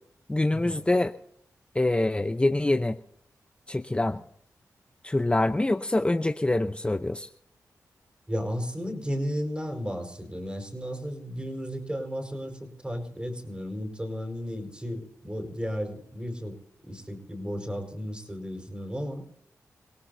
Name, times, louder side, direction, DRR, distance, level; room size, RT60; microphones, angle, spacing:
voice 1, 0.3-1.1 1.7-3.0 3.7-4.2 5.0-7.3, left 2 dB, 20° left, 8 dB, 0.7 m, -25 dB
voice 2, 8.3-16.6 16.8-19.2, equal, 15° right, 5 dB, 4.7 m, -34 dB
26.5 x 17.5 x 2.7 m, 0.65 s
cardioid pair, 60°, 6 cm